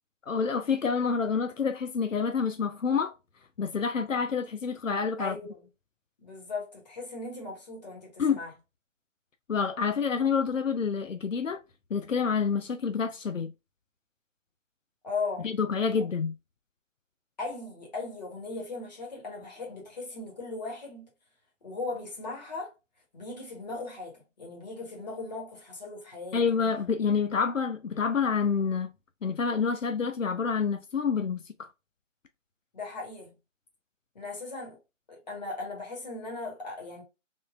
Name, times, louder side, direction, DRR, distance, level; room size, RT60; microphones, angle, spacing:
voice 1, 0.3-3.1 3.6-5.3 8.2-8.4 9.5-11.6 11.9-13.5 15.4-16.3 26.3-28.9 29.2-31.7, left 6 dB, 85° left, 0.6 m, -28 dB
voice 2, 5.2-5.7 6.2-8.5 15.0-15.5 16.0-16.1 17.4-21.1 21.6-22.7 23.1-26.4 32.7-33.3 34.1-34.8 35.1-37.0, left 3 dB, 35° left, 1.4 m, -38 dB
3.6 x 2.5 x 2.3 m
figure-of-eight pair, 155°, 38 cm